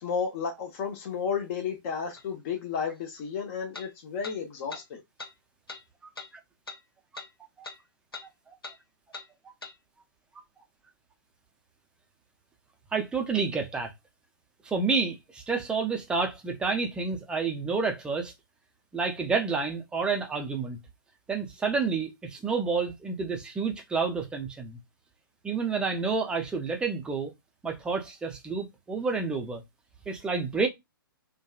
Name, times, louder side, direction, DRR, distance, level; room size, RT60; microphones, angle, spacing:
voice 1, 0.0-5.0, left 6 dB, 35° left, 0.7 m, -32 dB
sound 1, 2.2-2.3 3.7-3.9 4.2-4.4 4.7-4.8 5.2-5.3 5.7-5.8 6.2-6.3 6.7-6.8 7.1-7.3 7.6-7.8 8.1-8.3 8.6-8.8 9.1-9.3 9.6-9.7, left 3 dB, 85° left, 0.6 m, -41 dB
voice 2, 12.9-13.9 14.6-18.3 18.9-20.8 21.3-24.8 25.4-27.3 27.6-29.6 30.1-30.7, right 4 dB, 5° right, 0.5 m, -29 dB
2.7 x 2.3 x 2.3 m
figure-of-eight pair, 120°, 12 cm